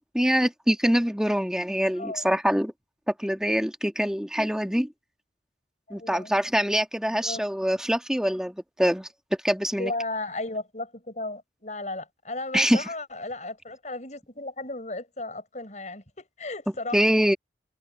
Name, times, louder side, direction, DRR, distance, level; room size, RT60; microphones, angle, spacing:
voice 1, 0.1-2.7 3.1-4.9 5.9-9.1 9.4-9.9 12.5-12.8 16.9-17.4, equal, 5° right, 1.5 m, -24 dB
voice 2, 2.0-2.3 5.9-6.3 7.0-7.4 9.8-17.1, left 2 dB, 40° left, 6.3 m, -35 dB
head